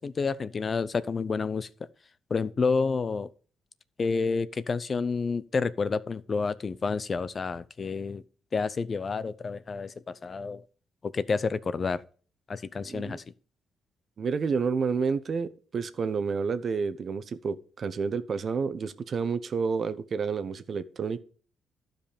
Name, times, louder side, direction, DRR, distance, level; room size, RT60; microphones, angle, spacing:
voice 1, 0.0-1.7 2.3-3.3 4.0-8.2 8.5-10.6 11.0-12.0 12.5-13.2, left 4 dB, 40° left, 0.6 m, -29 dB
voice 2, 12.9-13.2 14.2-21.2, right 5 dB, 50° right, 0.9 m, -30 dB
12.0 x 5.3 x 5.1 m
cardioid pair, 90°, 0 cm